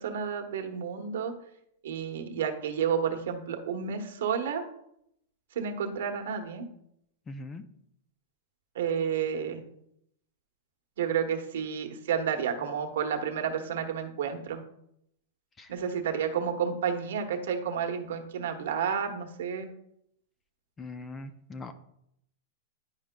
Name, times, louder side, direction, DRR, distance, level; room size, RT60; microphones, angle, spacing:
voice 1, 0.0-1.3 1.8-4.6 5.5-6.6 8.7-9.6 11.0-14.6 15.7-19.7, right 7 dB, 75° right, 4 dB, 1.0 m, -31 dB
voice 2, 7.3-7.6 15.6-15.7 20.8-21.7, left 2 dB, 15° left, 10 dB, 0.4 m, -41 dB
10.5 x 4.9 x 2.2 m, 0.76 s
supercardioid pair, 155°, 0 cm